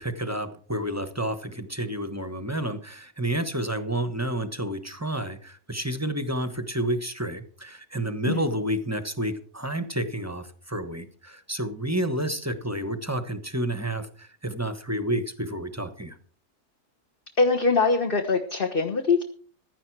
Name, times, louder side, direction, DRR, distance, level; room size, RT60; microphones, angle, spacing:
voice 1, 0.0-16.2, right 1 dB, 10° right, 10 dB, 1.0 m, -30 dB
voice 2, 17.4-19.2, left 4 dB, 35° left, 4 dB, 1.5 m, -22 dB
16.0 x 11.5 x 4.7 m, 0.44 s
omnidirectional pair, 1.7 m